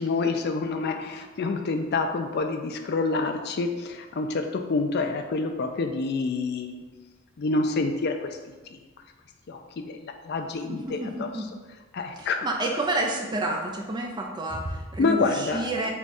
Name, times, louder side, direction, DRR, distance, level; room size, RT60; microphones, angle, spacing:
voice 1, 0.0-6.8 7.4-8.8 9.5-11.3 11.9-12.5 15.0-15.9, left 3 dB, 45° left, 5 dB, 0.4 m, -28 dB
voice 2, 10.7-11.4 12.2-15.9, right 2 dB, 20° right, 1 dB, 0.4 m, -29 dB
4.6 x 2.4 x 4.1 m, 1.3 s
head